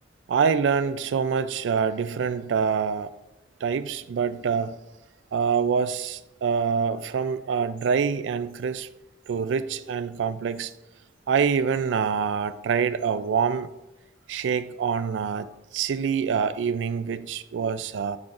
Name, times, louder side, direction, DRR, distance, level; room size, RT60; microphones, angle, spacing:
voice 1, 0.3-3.1 3.6-4.8 5.3-8.9 9.3-10.7 11.3-13.7 14.3-18.2, right 6 dB, 85° right, 14 dB, 0.3 m, -25 dB
8.6 x 6.1 x 2.5 m, 0.97 s
head